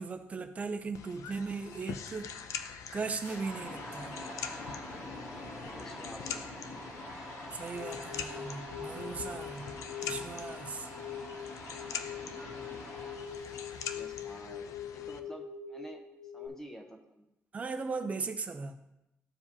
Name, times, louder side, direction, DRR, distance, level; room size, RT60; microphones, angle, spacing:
voice 1, 0.0-2.3 2.9-4.1 7.5-9.7 10.0-10.9 17.5-18.7, right 4 dB, 25° right, 7 dB, 0.5 m, -38 dB
sound 1, 0.9-15.2, left 7 dB, 80° left, 0.5 m, -44 dB
sound 2, 3.2-14.5, left 1 dB, 60° left, 2.5 m, -45 dB
voice 2, 5.7-6.4 13.9-16.0 16.3-17.2, equal, 10° left, 2 dB, 0.8 m, -49 dB
sound 3, 7.6-16.5, left 8 dB, 30° left, 2.0 m, -43 dB
13.5 x 4.7 x 2.8 m, 0.88 s
cardioid pair, 175°, 5 cm